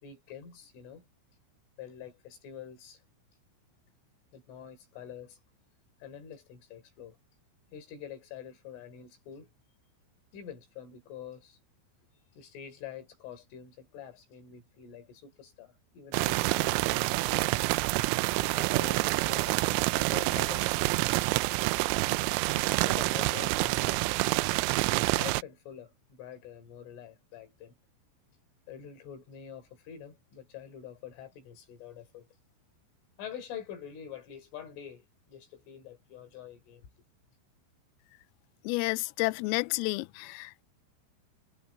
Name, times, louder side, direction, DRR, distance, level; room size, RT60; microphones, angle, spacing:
voice 1, 0.0-1.1 1.8-3.0 4.3-5.4 6.0-7.2 7.7-9.5 10.3-11.6 12.4-17.6 18.4-20.9 22.7-24.0 25.1-27.7 28.7-32.3 33.2-36.9, left 8 dB, 70° left, 6.6 m, -46 dB
sound 1, 16.1-25.4, right 22 dB, 85° right, 3.1 m, -27 dB
voice 2, 38.6-40.6, left 24 dB, 85° left, 3.3 m, -30 dB
omnidirectional pair, 6.0 m